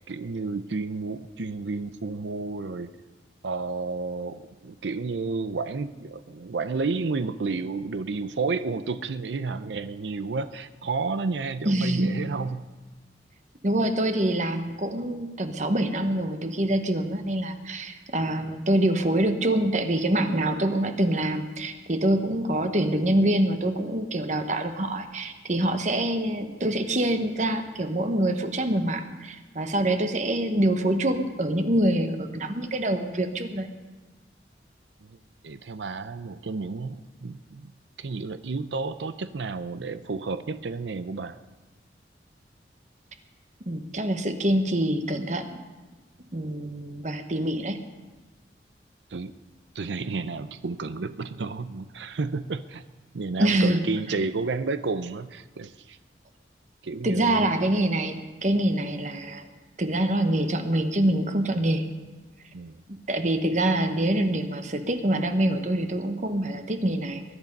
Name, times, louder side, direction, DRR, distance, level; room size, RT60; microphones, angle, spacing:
voice 1, 0.0-2.9 3.4-12.7 35.0-35.2 35.4-37.7 38.0-41.4 49.1-49.3 49.7-52.8 53.1-56.0 56.8-57.7 62.5-62.8, right 4 dB, 90° right, 13 dB, 0.6 m, -31 dB
voice 2, 11.6-12.1 13.6-33.7 43.7-45.5 46.3-47.8 53.4-53.8 57.0-59.5 59.8-61.8 62.9-67.3, right 1 dB, 40° right, 7 dB, 1.2 m, -25 dB
21.0 x 11.0 x 5.3 m, 1.2 s
head